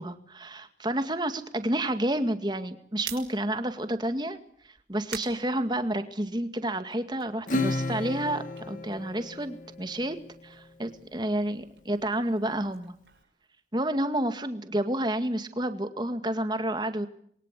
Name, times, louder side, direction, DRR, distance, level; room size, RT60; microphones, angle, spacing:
voice 1, 0.0-4.4 4.6-10.2 10.4-12.9 13.7-17.1, right 1 dB, 25° right, 9 dB, 2.0 m, -30 dB
sound 1, 2.8-6.4 6.8-9.7 10.0-14.1, right 10 dB, 90° right, 6.0 m, -48 dB
Acoustic guitar / Strum, 7.5-10.4, left 2 dB, 45° left, 1.7 m, -33 dB
27.5 x 23.0 x 8.3 m, 0.66 s
head